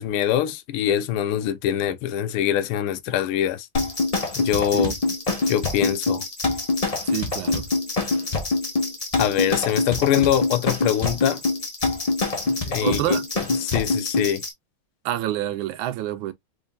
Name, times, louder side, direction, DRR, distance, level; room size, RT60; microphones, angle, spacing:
voice 1, 0.0-3.7 4.4-4.9 5.5-6.2 9.2-11.4 12.5-14.4, left 10 dB, 90° left, 1.5 m, -24 dB
sound 1, 3.7-14.5, left 3 dB, 35° left, 0.5 m, -25 dB
voice 2, 7.1-7.6 12.8-13.3 15.0-16.3, right 13 dB, 75° right, 1.4 m, -27 dB
3.8 x 3.6 x 2.3 m
omnidirectional pair, 2.3 m